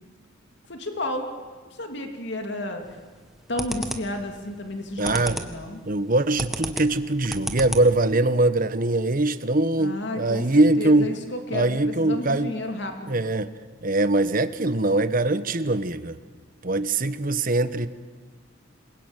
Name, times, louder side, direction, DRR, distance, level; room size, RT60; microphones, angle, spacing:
voice 1, 0.7-1.3 1.6-3.0 3.5-5.8 9.8-13.2, left 1 dB, 60° left, 4 dB, 3.1 m, -32 dB
sound 1, 2.8-3.2 3.6-4.2 4.7-5.6 5.9-8.1, equal, ahead, 1.6 m, -32 dB
voice 2, 5.0-5.4 5.8-11.1 11.5-12.5 13.1-13.5 13.8-16.2 16.6-17.9, right 2 dB, 45° right, 12 dB, 1.3 m, -22 dB
27.5 x 22.5 x 9.1 m, 1.4 s
head